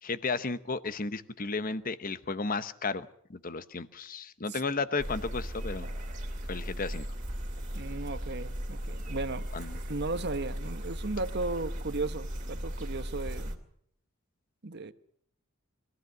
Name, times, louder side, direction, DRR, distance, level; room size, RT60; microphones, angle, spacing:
voice 1, 0.0-5.9 6.5-7.1 9.5-9.8, left 4 dB, 40° left, 13 dB, 0.9 m, -33 dB
sound 1, 5.0-13.6, equal, 35° right, 2.8 m, -37 dB
voice 2, 7.7-9.5 9.9-13.6 14.6-14.9, right 3 dB, 50° right, 11 dB, 1.1 m, -35 dB
23.0 x 15.0 x 8.0 m, 0.68 s
head